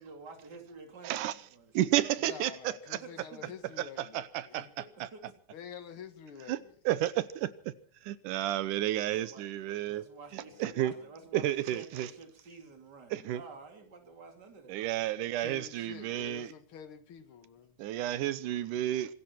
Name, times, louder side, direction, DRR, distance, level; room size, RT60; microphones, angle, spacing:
voice 1, 0.0-1.8 3.0-3.4 4.8-5.3 6.1-6.2 9.0-9.5 9.9-14.8, right 4 dB, 35° right, 3.1 m, -50 dB
voice 2, 1.7-3.0 3.8-4.7 6.5-6.6 6.9-7.7 8.0-10.0 10.3-10.9 11.3-12.1 13.1-13.4 14.7-16.5 17.8-19.1, right 13 dB, 90° right, 2.4 m, -31 dB
voice 3, 2.3-4.7 5.5-6.8 10.4-11.3 15.2-17.8, left 7 dB, 50° left, 2.1 m, -48 dB
25.5 x 13.0 x 4.4 m
omnidirectional pair, 3.5 m